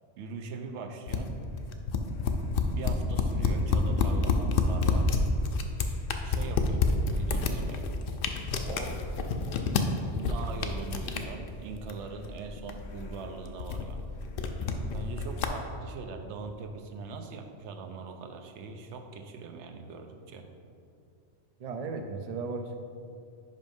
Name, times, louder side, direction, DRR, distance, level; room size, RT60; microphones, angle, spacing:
voice 1, 0.2-1.4 2.7-5.1 6.2-6.8 7.1-7.8 8.6-9.0 10.2-14.0 14.9-20.5, right 4 dB, 75° right, 5 dB, 0.9 m, -41 dB
sound 1, 1.1-15.5, left 4 dB, 60° left, 0.7 m, -29 dB
voice 2, 21.6-22.7, right 4 dB, 60° right, 5 dB, 0.4 m, -35 dB
5.5 x 5.2 x 5.3 m, 2.5 s
omnidirectional pair, 1.2 m